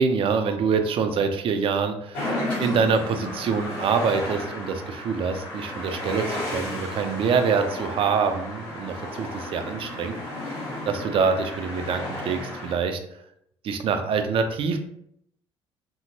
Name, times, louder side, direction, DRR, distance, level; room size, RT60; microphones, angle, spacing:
voice 1, 0.0-2.3 2.6-10.1 10.9-13.0 13.6-14.8, right 5 dB, 40° right, 7 dB, 0.4 m, -25 dB
sound 1, 2.1-12.8, left 1 dB, 60° left, 1.0 m, -33 dB
2.8 x 2.7 x 2.7 m, 0.74 s
figure-of-eight pair, 50°, 14 cm